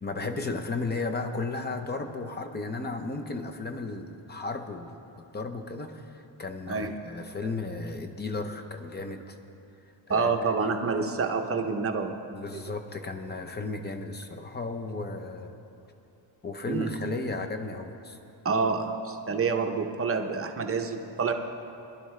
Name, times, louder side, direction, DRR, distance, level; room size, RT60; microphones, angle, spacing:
voice 1, 0.0-4.9 5.3-9.4 10.1-10.3 12.3-15.6 16.4-18.2, left 3 dB, 20° left, 6 dB, 0.7 m, -34 dB
voice 2, 10.1-12.2 12.5-12.6 16.7-16.9 18.4-21.4, right 4 dB, 30° right, 4 dB, 0.7 m, -28 dB
21.0 x 11.5 x 3.2 m, 2.8 s
cardioid pair, 155°, 47 cm